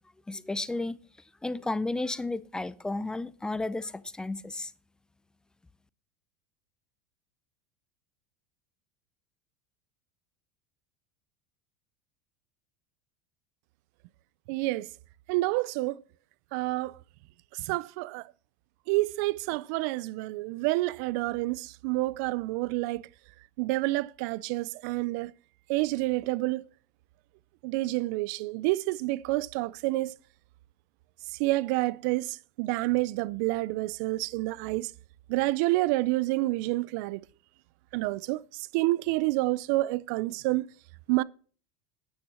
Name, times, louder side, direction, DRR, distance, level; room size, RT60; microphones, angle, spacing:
voice 1, 0.3-1.0 1.4-4.7, left 2 dB, 10° left, 0.5 m, -33 dB
voice 2, 14.5-14.9 15.3-16.0 16.5-16.9 17.6-18.2 18.9-23.1 23.6-25.3 25.7-26.6 27.6-30.1 31.4-34.9 35.3-37.2 37.9-38.4 38.7-40.7 41.1-41.2, right 19 dB, 65° right, 0.4 m, -28 dB
9.9 x 8.8 x 6.2 m
supercardioid pair, 120°, 10 cm